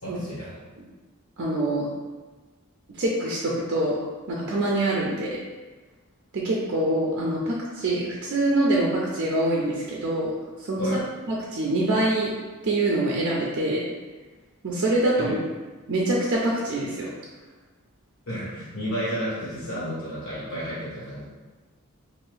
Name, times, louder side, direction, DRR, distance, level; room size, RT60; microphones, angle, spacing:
voice 1, 0.0-0.5 10.8-11.0 15.2-15.3 18.3-21.2, equal, 85° left, -9 dB, 1.4 m, -31 dB
voice 2, 1.4-1.9 2.9-3.9 4.3-5.4 6.3-10.3 10.6-10.9 11.3-12.3 12.6-13.8 14.6-15.4 15.9-17.1, right 1 dB, 55° right, -4 dB, 0.4 m, -25 dB
2.7 x 2.5 x 3.3 m, 1.3 s
head